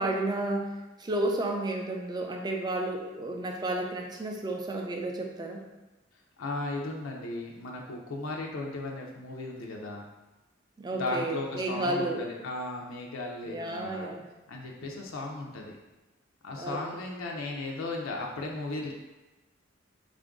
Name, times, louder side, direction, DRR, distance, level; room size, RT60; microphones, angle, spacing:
voice 1, 0.0-5.6 10.8-12.3 13.5-14.2 16.6-17.0, right 2 dB, 20° right, 2 dB, 0.4 m, -32 dB
voice 2, 6.4-10.0 10.9-14.1 14.5-15.8 16.4-18.9, left 2 dB, 80° left, 0 dB, 0.5 m, -36 dB
3.7 x 2.5 x 3.5 m, 1.1 s
head